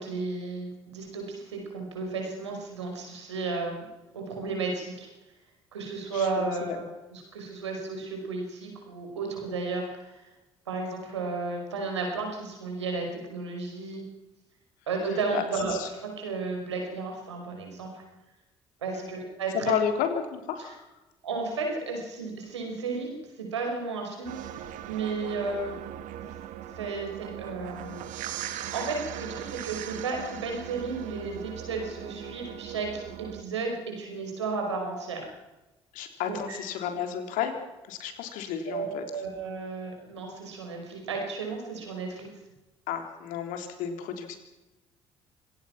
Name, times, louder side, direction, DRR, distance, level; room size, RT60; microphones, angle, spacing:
voice 1, 0.0-3.9 4.1-5.1 5.7-6.8 7.1-10.3 10.7-14.0 14.9-18.0 18.8-19.8 20.6-20.7 21.2-23.1 23.4-25.8 26.7-35.3 36.3-36.6 38.6-42.3, right 4 dB, 85° right, 2 dB, 5.4 m, -33 dB
voice 2, 6.1-6.8 15.3-15.4 15.8-15.9 18.9-19.1 19.7-20.8 35.9-37.6 37.9-39.1 42.9-44.4, left 9 dB, 70° left, 6 dB, 3.5 m, -32 dB
sound 1, 24.2-33.4, right 11 dB, 65° right, 1.6 m, -39 dB
26.0 x 18.0 x 6.0 m, 1.0 s
hypercardioid pair, 50°, 14 cm